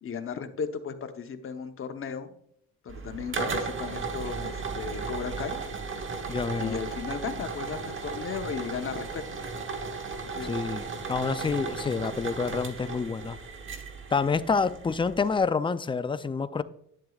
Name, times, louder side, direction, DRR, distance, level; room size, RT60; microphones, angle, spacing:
voice 1, 0.0-2.3 2.8-5.6 6.6-9.2 10.2-10.5, left 6 dB, 45° left, 0.9 m, -35 dB
sound 1, 2.9-15.4, right 4 dB, 40° right, 1.2 m, -35 dB
voice 2, 6.3-6.8 10.4-10.8 11.1-13.4 14.1-16.6, left 5 dB, 15° left, 0.4 m, -28 dB
10.5 x 7.5 x 2.4 m
cardioid pair, 90°, 30 cm